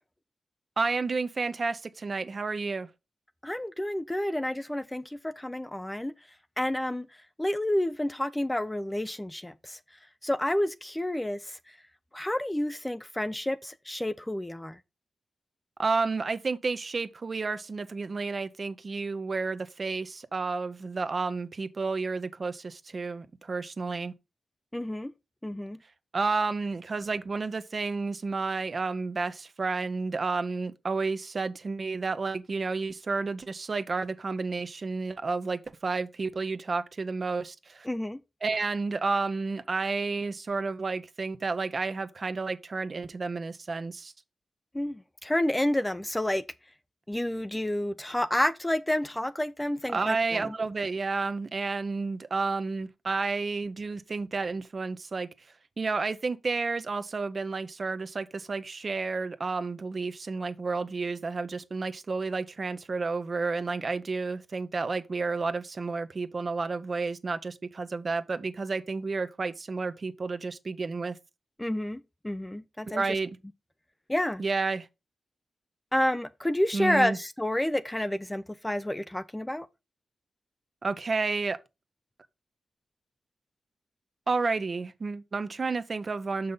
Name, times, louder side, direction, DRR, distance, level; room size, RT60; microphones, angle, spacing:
voice 1, 0.8-2.9 15.8-24.1 26.1-37.9 38.4-44.1 49.9-55.3 55.8-71.2 72.9-73.3 74.4-74.9 76.7-77.2 80.8-81.6 84.3-86.5, right 4 dB, 40° right, 0.7 m, -31 dB
voice 2, 3.4-6.1 6.6-7.1 7.4-9.8 10.2-11.6 12.1-14.8 24.7-25.1 25.4-25.8 37.8-38.2 44.7-46.4 47.1-50.6 71.6-73.1 74.1-74.4 75.9-79.7, left 1 dB, 10° left, 0.4 m, -29 dB
6.5 x 5.5 x 3.9 m
wide cardioid pair, 110°, 0 cm